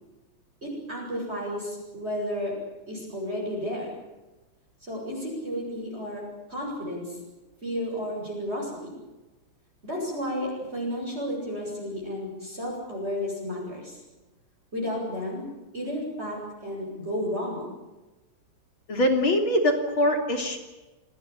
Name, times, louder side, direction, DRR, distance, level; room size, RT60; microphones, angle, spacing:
voice 1, 0.6-2.6 2.9-3.9 4.9-6.2 6.5-7.2 7.6-9.0 9.8-14.0 14.7-15.5 15.7-17.6, equal, 20° right, -2 dB, 8.0 m, -32 dB
voice 2, 18.9-20.6, left 1 dB, 40° left, 5 dB, 3.8 m, -23 dB
27.5 x 19.0 x 8.8 m, 1.1 s
omnidirectional pair, 3.5 m